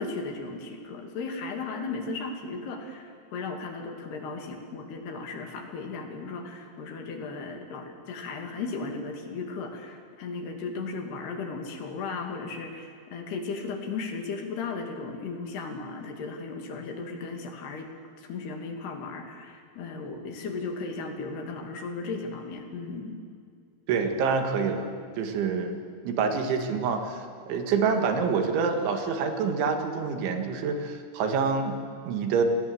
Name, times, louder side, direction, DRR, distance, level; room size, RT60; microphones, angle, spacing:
voice 1, 0.0-17.9 18.2-23.2, left 4 dB, 65° left, 3 dB, 4.3 m, -36 dB
voice 2, 23.9-24.9 25.2-25.8 26.1-32.4, right 5 dB, 85° right, 5 dB, 4.4 m, -27 dB
29.0 x 19.0 x 8.0 m, 2.2 s
omnidirectional pair, 5.2 m